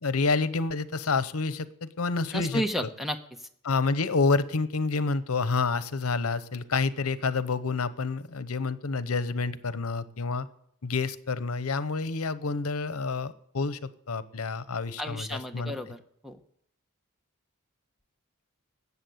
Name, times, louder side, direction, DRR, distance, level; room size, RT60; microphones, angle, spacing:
voice 1, 0.0-2.6 3.6-10.5 10.8-15.7, left 4 dB, 85° left, 14 dB, 0.9 m, -28 dB
voice 2, 2.3-3.4 15.0-16.4, equal, ahead, 7 dB, 1.0 m, -32 dB
19.5 x 8.3 x 8.0 m, 0.74 s
head